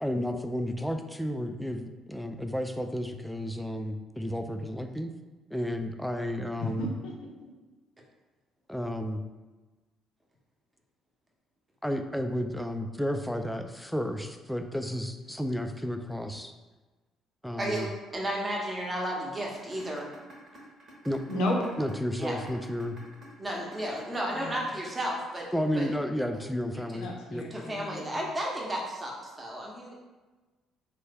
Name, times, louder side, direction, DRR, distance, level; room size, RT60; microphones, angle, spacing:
voice 1, 0.0-5.1 5.5-6.9 8.7-9.2 11.8-16.5 17.4-17.9 21.0-21.2 21.8-23.0 25.5-27.5, equal, ahead, 6 dB, 0.3 m, -32 dB
voice 2, 6.6-7.5 21.3-21.6 24.4-24.6 26.9-28.2, left 1 dB, 75° left, -1 dB, 0.6 m, -33 dB
voice 3, 17.6-17.9 18.1-20.1 22.2-22.3 23.4-25.5 25.7-25.9 27.5-30.0, right 1 dB, 25° right, -2 dB, 0.8 m, -33 dB
sound 1, 19.5-25.6, right 1 dB, 55° right, 1.0 m, -51 dB
3.2 x 2.2 x 3.3 m, 1.2 s
hypercardioid pair, 60°, 0 cm